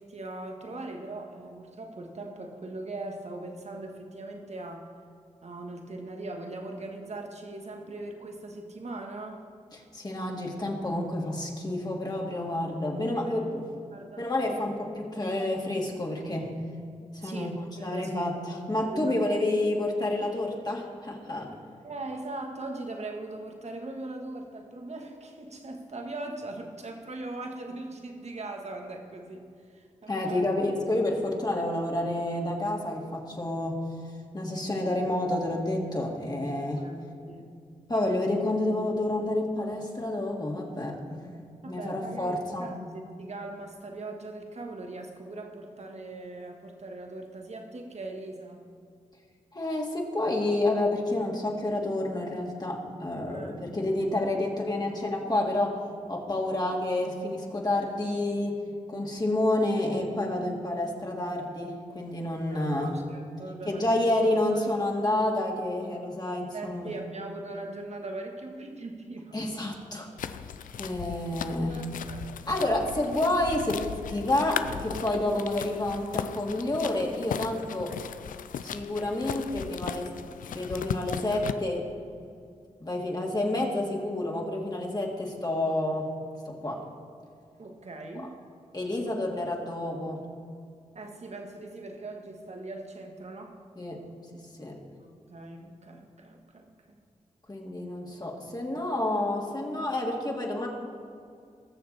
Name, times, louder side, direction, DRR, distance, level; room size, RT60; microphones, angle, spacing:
voice 1, 0.0-4.9 5.4-9.4 13.1-13.5 13.9-14.3 17.2-18.3 18.9-19.2 21.8-30.5 36.8-37.5 41.6-48.6 53.3-53.6 62.5-64.1 64.5-64.6 66.5-69.4 71.7-72.4 87.6-88.4 89.0-89.2 91.0-93.6 95.3-97.0, right 2 dB, 55° right, 3 dB, 1.8 m, -40 dB
voice 2, 9.7-13.7 14.2-16.6 17.2-21.5 30.1-33.8 34.3-36.9 37.9-41.4 41.7-42.8 49.5-55.8 56.1-58.6 58.9-63.0 63.7-67.0 69.3-70.1 70.8-71.9 72.5-77.9 78.6-80.1 80.5-81.9 82.8-86.1 86.5-86.8 88.1-88.3 88.7-90.2 93.8-94.0 94.3-94.8 97.5-100.7, left 1 dB, 30° left, -1 dB, 2.6 m, -29 dB
sound 1, 70.2-81.5, left 8 dB, 85° left, 0.4 m, -37 dB
20.0 x 6.8 x 4.3 m, 2.4 s
cardioid pair, 45°, 14 cm